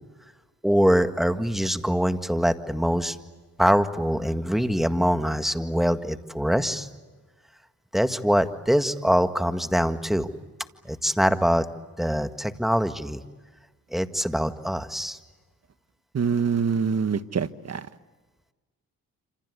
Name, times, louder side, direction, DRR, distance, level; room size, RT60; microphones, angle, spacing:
voice 1, 0.6-3.2 3.6-6.9 7.9-10.3 10.9-11.7 12.0-13.2 13.9-15.2, equal, ahead, 9 dB, 1.8 m, -23 dB
voice 2, 16.1-17.9, right 6 dB, 45° right, 13 dB, 1.3 m, -25 dB
27.5 x 27.0 x 8.1 m, 1.3 s
cardioid pair, 65°, 35 cm